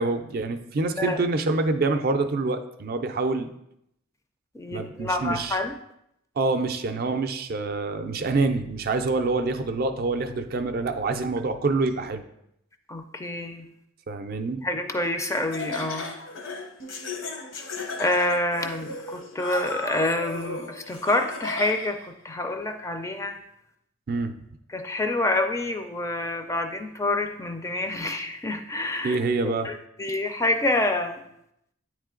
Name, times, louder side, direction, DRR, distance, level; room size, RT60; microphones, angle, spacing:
voice 1, 0.0-3.5 4.7-5.6 6.4-12.2 14.1-14.6 24.1-24.3 29.0-29.7, right 3 dB, 50° right, 7 dB, 0.4 m, -26 dB
voice 2, 4.5-5.7 12.9-13.7 14.6-16.1 18.0-23.4 24.7-29.2 29.6-31.2, left 2 dB, 15° left, 6 dB, 0.4 m, -27 dB
Laughter, 15.2-22.0, left 3 dB, 75° left, 0.9 m, -36 dB
8.8 x 3.2 x 3.7 m, 0.78 s
head